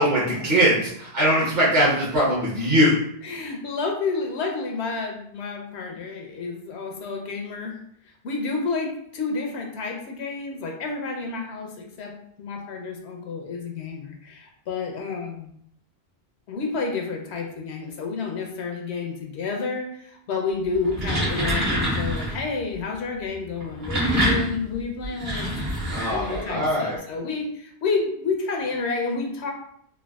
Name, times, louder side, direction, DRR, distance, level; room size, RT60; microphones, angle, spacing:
voice 1, 0.0-3.0 25.9-27.0, equal, 50° right, -7 dB, 0.9 m, -21 dB
voice 2, 3.2-7.8 8.2-15.5 16.5-25.5 25.8-29.5, left 4 dB, 85° left, 2 dB, 0.9 m, -30 dB
sound 1, 20.7-22.4 23.6-26.6, equal, 70° right, 1.3 m, -26 dB
3.4 x 2.2 x 2.3 m, 0.69 s
omnidirectional pair, 1.1 m